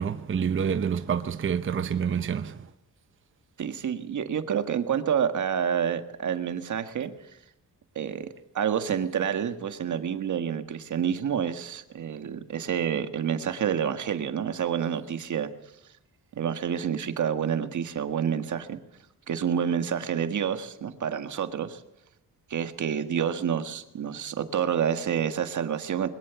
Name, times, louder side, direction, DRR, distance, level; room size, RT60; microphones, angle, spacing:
voice 1, 0.0-2.6, right 7 dB, 35° right, 0.9 m, -27 dB
voice 2, 3.6-7.1 7.9-8.3 8.5-15.5 16.4-18.8 19.3-21.8 22.5-26.1, right 8 dB, 55° right, 1.7 m, -28 dB
22.0 x 20.0 x 7.1 m
wide cardioid pair, 175°, 36 cm